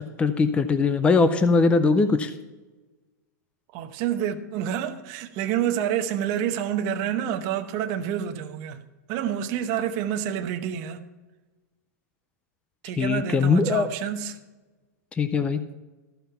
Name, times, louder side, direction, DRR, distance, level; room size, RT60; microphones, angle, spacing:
voice 1, 0.2-2.3 13.0-13.9 15.2-15.6, left 4 dB, 10° left, 0.4 m, -21 dB
voice 2, 3.7-8.8 9.1-11.0 12.8-14.4, right 9 dB, 40° right, 0.9 m, -28 dB
14.0 x 5.6 x 5.7 m
supercardioid pair, 145°, 10 cm